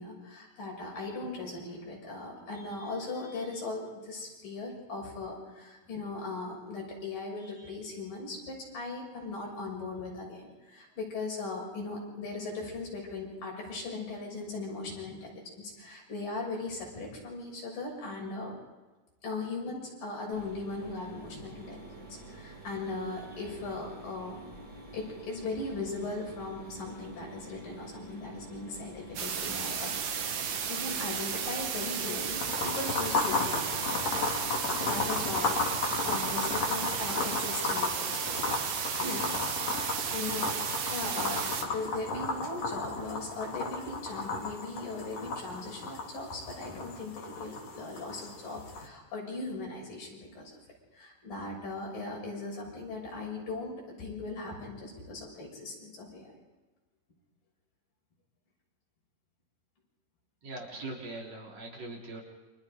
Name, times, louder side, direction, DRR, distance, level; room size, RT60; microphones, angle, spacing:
voice 1, 0.0-18.5 19.2-24.4 24.9-34.4 34.8-38.5 39.0-39.2 40.1-50.5 50.9-56.3, left 3 dB, 80° left, -2 dB, 8.4 m, -39 dB
Mechanisms, 20.3-36.5, right 1 dB, 30° right, 4.7 m, -48 dB
sound 1, 29.2-41.6, right 7 dB, 75° right, 3.3 m, -34 dB
sound 2, 32.4-48.9, left 3 dB, 55° left, 3.7 m, -34 dB
voice 2, 60.4-62.2, right 2 dB, 50° right, -2 dB, 4.8 m, -41 dB
29.5 x 26.0 x 5.2 m, 1.2 s
omnidirectional pair, 3.9 m